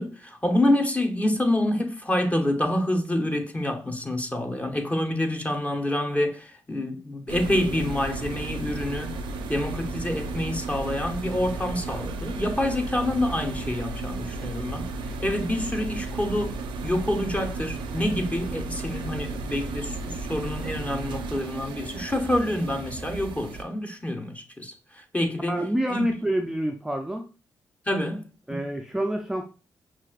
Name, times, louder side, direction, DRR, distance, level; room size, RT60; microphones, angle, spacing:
voice 1, 0.0-9.2 9.5-14.9 15.2-25.6 25.9-26.1 27.9-28.2 28.5-28.6, left 1 dB, 20° left, 0.9 m, -27 dB
sound 1, 7.3-23.6, right 3 dB, 85° right, 0.5 m, -34 dB
voice 2, 25.5-27.3 28.5-29.5, right 1 dB, 5° right, 0.4 m, -27 dB
5.8 x 2.5 x 2.4 m
supercardioid pair, 55°, 8 cm